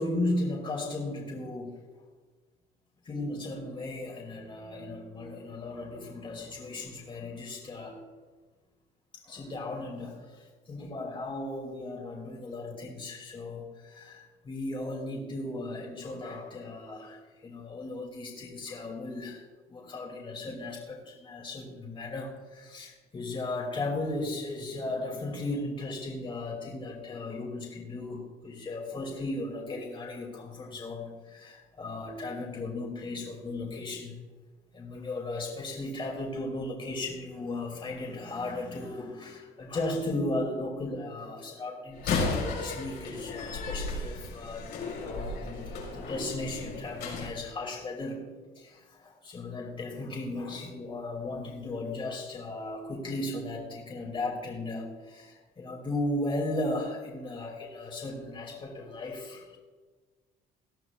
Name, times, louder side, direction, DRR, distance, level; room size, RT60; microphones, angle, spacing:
voice 1, 0.0-1.7 3.0-8.0 9.1-34.2 34.7-59.6, left 2 dB, 30° left, -2 dB, 2.8 m, -36 dB
Slam, 41.9-47.3, left 3 dB, 80° left, 4.5 m, -34 dB
19.0 x 12.0 x 2.5 m, 1.4 s
cardioid pair, 110°, 17 cm